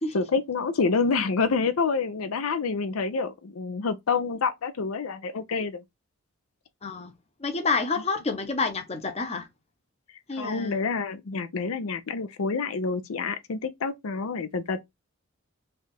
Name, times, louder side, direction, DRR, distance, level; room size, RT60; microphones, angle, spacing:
voice 1, 0.1-5.8 10.4-14.8, left 4 dB, 85° left, 0.5 m, -27 dB
voice 2, 6.8-7.1 7.4-9.5 10.3-10.8, left 4 dB, 30° left, 0.7 m, -28 dB
3.4 x 2.5 x 4.2 m
head